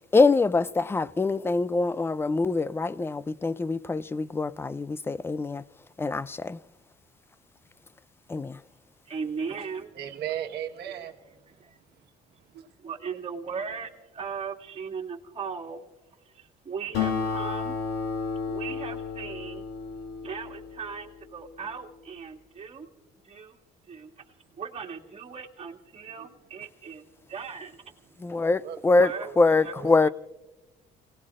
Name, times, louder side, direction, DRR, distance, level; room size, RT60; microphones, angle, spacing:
voice 1, 0.1-5.6 6.0-6.6 8.3-8.6 28.2-29.1 29.4-30.1, left 3 dB, 15° left, 0.4 m, -24 dB
voice 2, 9.0-9.9 11.5-11.8 12.8-15.8 16.3-17.8 18.5-19.6 20.2-22.9 23.2-23.6 23.8-24.2 24.5-27.8 28.9-30.1, right 6 dB, 35° right, 2.2 m, -38 dB
voice 3, 10.0-11.2 12.5-12.6 26.2-26.3 28.6-28.8 29.1-29.4 29.7-29.9, right 10 dB, 75° right, 1.4 m, -35 dB
Acoustic guitar, 16.9-21.8, left 5 dB, 85° left, 2.8 m, -32 dB
29.5 x 19.0 x 2.5 m
cardioid pair, 110°, 17 cm